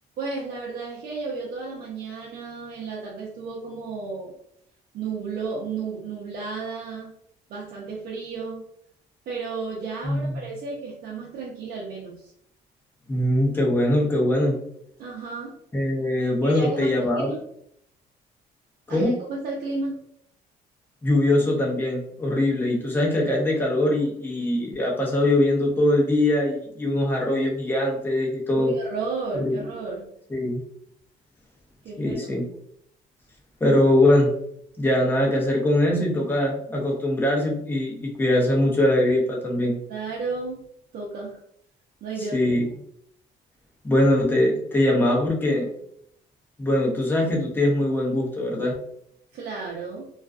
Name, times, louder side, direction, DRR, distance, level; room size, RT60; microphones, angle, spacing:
voice 1, 0.2-4.3 4.9-7.1 7.5-8.6 9.3-12.3 15.0-15.6 16.4-17.4 18.9-20.0 28.6-30.1 31.8-32.4 39.9-40.6 40.9-41.4 42.0-42.6 49.3-50.1, right 4 dB, 60° right, -6 dB, 0.7 m, -33 dB
voice 2, 13.1-14.5 15.7-17.3 18.9-19.1 21.0-28.7 29.3-29.6 30.3-30.6 32.0-32.4 33.6-34.3 34.8-39.8 42.3-42.7 43.8-45.7 46.6-48.7, left 1 dB, 10° left, -2 dB, 0.7 m, -22 dB
2.4 x 2.2 x 2.4 m, 0.70 s
cardioid pair, 110°, 17 cm